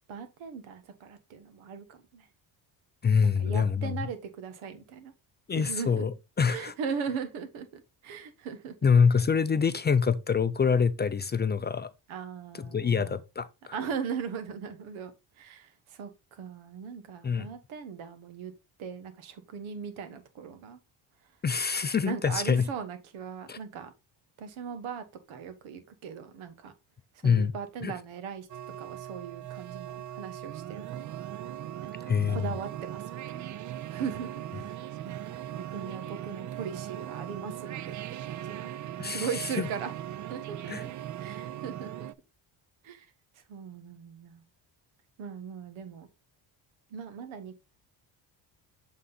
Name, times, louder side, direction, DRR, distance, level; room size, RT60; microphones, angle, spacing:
voice 1, 0.1-2.3 3.2-5.1 5.6-6.0 6.5-8.9 12.1-13.2 13.7-15.1 15.4-18.5 18.8-20.8 22.0-23.9 24.4-26.7 27.1-28.5 28.8-31.0 31.8-33.5 33.9-37.9 38.2-38.7 39.0-39.9 40.3-40.9 41.2-42.1 42.8-43.1 43.5-44.4 45.2-46.1 46.9-47.6, right 6 dB, 90° right, 1.4 m, -39 dB
voice 2, 3.0-3.9 5.5-6.7 8.8-11.9 12.6-13.7 17.2-17.5 21.4-22.7 23.5-23.6 27.2-27.5 27.8-27.9 32.1-32.5 39.0-39.7 40.7-40.8, left 6 dB, 25° left, 0.4 m, -26 dB
sound 1, 28.5-42.1, right 12 dB, 40° right, 0.4 m, -39 dB
7.6 x 3.9 x 3.8 m
cardioid pair, 100°, 46 cm